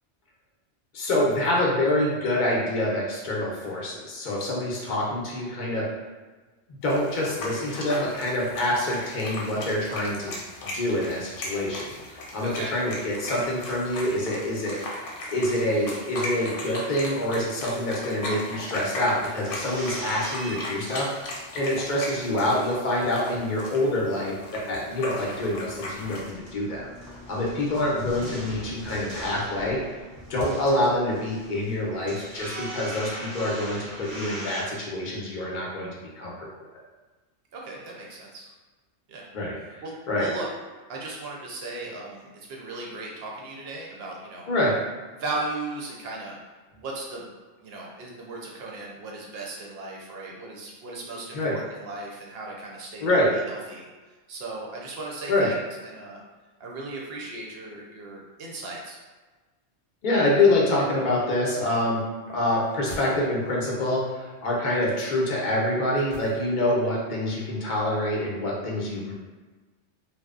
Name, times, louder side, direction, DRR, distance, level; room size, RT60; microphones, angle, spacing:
voice 1, 0.9-5.9 6.7-10.4 10.7-15.0 15.3-21.1 21.5-26.9 27.3-29.8 30.3-35.9 36.2-36.5 39.3-40.3 44.5-44.8 51.3-51.6 53.0-53.3 55.3-55.5 60.0-62.0 62.3-69.1, left 1 dB, 50° left, -4 dB, 0.6 m, -26 dB
sound 1, 6.8-26.3, left 1 dB, 85° left, 0.9 m, -37 dB
voice 2, 12.4-12.7 37.5-38.5 39.1-39.3 39.8-40.5 40.9-44.5 45.1-46.4 46.7-47.3 47.6-53.9 54.3-55.5 55.8-56.2 56.6-59.0, right 2 dB, 65° right, -2 dB, 0.7 m, -37 dB
sound 2, 19.5-21.8 22.2-24.2 24.6-24.7 24.8-34.6, equal, 25° right, 0.5 m, -40 dB
sound 3, 62.5-63.7 66.1-67.0 67.3-67.4, equal, 15° left, 0.8 m, -44 dB
2.7 x 2.1 x 2.3 m, 1.3 s
omnidirectional pair, 1.2 m